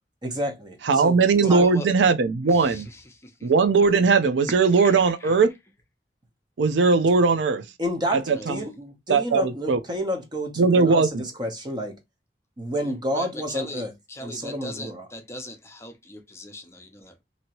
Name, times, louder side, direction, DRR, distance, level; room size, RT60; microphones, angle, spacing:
voice 1, 0.2-1.2 1.5-1.6 7.8-8.2 8.5-12.0 12.6-13.9 14.2-15.1, equal, 25° right, 0.8 m, -30 dB
voice 2, 0.8-2.9 3.4-5.5 6.6-7.7 8.1-8.7 9.1-9.8 10.6-11.3, right 4 dB, 85° right, 0.4 m, -19 dB
voice 3, 1.4-1.9 2.5-2.8 3.2-3.5 4.8-5.3 8.3-8.7 12.8-13.8 14.1-17.2, left 1 dB, 15° left, 0.6 m, -39 dB
2.9 x 2.7 x 2.8 m
head